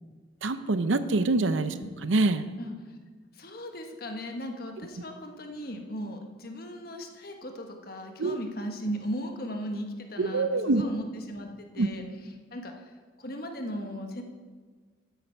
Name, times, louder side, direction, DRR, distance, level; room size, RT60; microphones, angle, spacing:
voice 1, 0.4-1.8 2.0-2.4 8.2-8.4 10.2-10.8 11.8-11.9, right 3 dB, 85° right, 12 dB, 0.7 m, -25 dB
voice 2, 3.3-12.0 12.5-12.8 13.2-14.2, equal, 50° left, 4 dB, 1.3 m, -37 dB
12.5 x 10.0 x 4.5 m, 1.5 s
head